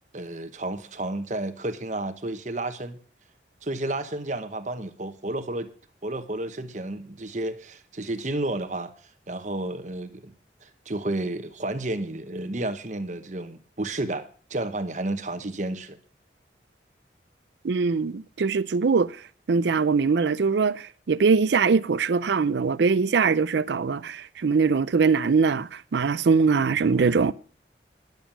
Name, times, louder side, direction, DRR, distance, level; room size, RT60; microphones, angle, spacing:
voice 1, 0.1-3.0 3.6-5.7 6.0-8.9 9.3-10.3 10.6-16.0, right 2 dB, 40° right, 1.0 m, -31 dB
voice 2, 17.6-19.1 19.5-27.3, right 5 dB, 70° right, 0.4 m, -22 dB
10.5 x 7.2 x 7.1 m
head